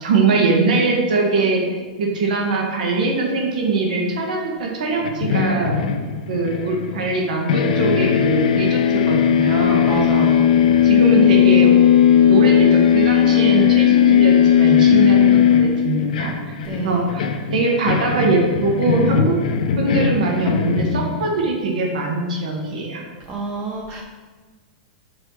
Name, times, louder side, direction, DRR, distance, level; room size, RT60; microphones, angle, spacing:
voice 1, 0.0-5.7 6.3-10.3 10.8-11.8 12.3-16.5 16.8-19.4 19.7-23.0, right 3 dB, 85° right, 0 dB, 1.5 m, -22 dB
sound 1, 5.0-7.2 7.5-21.5, left 8 dB, 75° left, 0.6 m, -17 dB
voice 2, 9.9-10.9 16.6-17.0 23.3-24.0, right 3 dB, 25° right, 1 dB, 0.7 m, -29 dB
6.4 x 4.5 x 4.6 m, 1.3 s
supercardioid pair, 165°, 4 cm